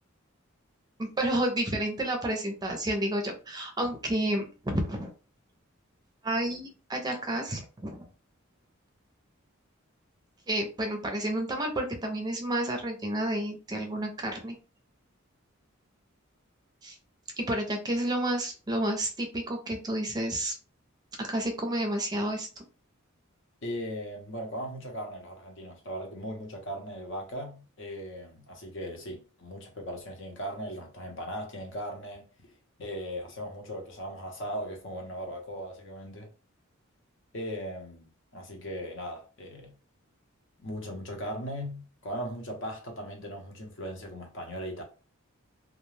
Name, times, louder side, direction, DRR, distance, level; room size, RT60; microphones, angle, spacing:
voice 1, 1.0-5.1 6.2-8.1 10.5-14.6 16.8-17.0 17.4-20.5 21.2-22.6, right 1 dB, 20° right, 0.5 m, -30 dB
voice 2, 23.6-32.3 32.8-36.3 37.3-39.8 40.6-44.8, equal, 60° left, 0.8 m, -38 dB
2.4 x 2.2 x 3.2 m
head